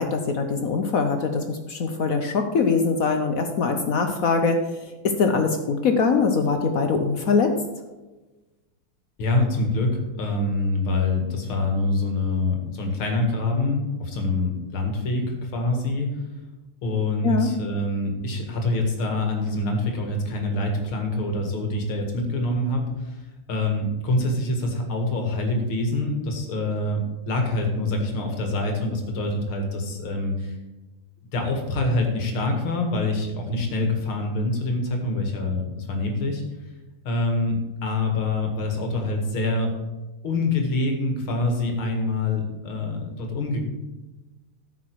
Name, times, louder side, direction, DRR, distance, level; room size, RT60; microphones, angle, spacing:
voice 1, 0.0-4.6 5.0-7.5 17.2-17.5, left 5 dB, 60° left, 6 dB, 0.9 m, -22 dB
voice 2, 9.2-16.2 16.8-23.2 23.5-30.5 31.3-36.4 37.0-39.7 40.2-43.6, left 2 dB, 90° left, 3 dB, 2.6 m, -25 dB
13.5 x 6.1 x 4.6 m, 1.1 s
omnidirectional pair, 2.2 m